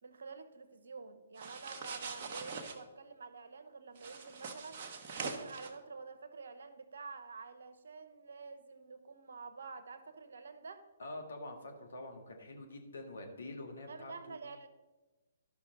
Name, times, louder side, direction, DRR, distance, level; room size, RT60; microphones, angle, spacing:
voice 1, 0.0-4.8 5.2-10.8 13.9-14.7, right 4 dB, 65° right, 10 dB, 0.9 m, -49 dB
sound 1, 1.4-2.7 3.9-5.7, right 4 dB, 40° right, 1.1 m, -43 dB
voice 2, 11.0-14.4, left 2 dB, 70° left, 4 dB, 1.6 m, -46 dB
12.5 x 5.9 x 3.9 m, 1.2 s
figure-of-eight pair, 130°, 0 cm